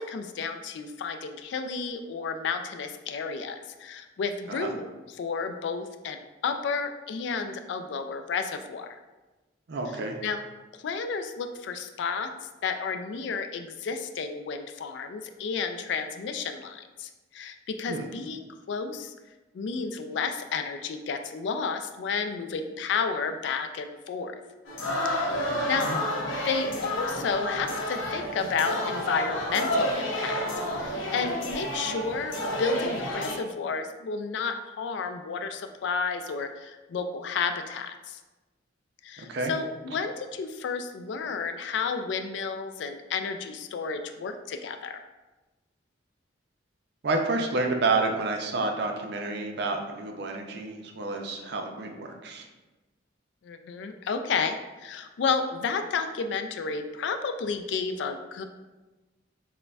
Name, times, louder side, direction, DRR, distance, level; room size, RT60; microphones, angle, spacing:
voice 1, 0.0-8.9 10.2-10.4 10.7-19.1 19.5-24.3 25.0-25.4 25.7-25.9 26.4-30.4 30.8-38.2 39.0-45.0 53.4-58.4, left 5 dB, 65° left, 8 dB, 0.3 m, -32 dB
voice 2, 9.7-10.2 17.9-18.1 25.5-26.0 39.2-39.5 47.0-52.5, right 3 dB, 55° right, 3 dB, 0.4 m, -29 dB
sound 1, 24.7-33.3, left 1 dB, 90° left, 0.7 m, -30 dB
6.4 x 2.2 x 2.3 m, 1.1 s
head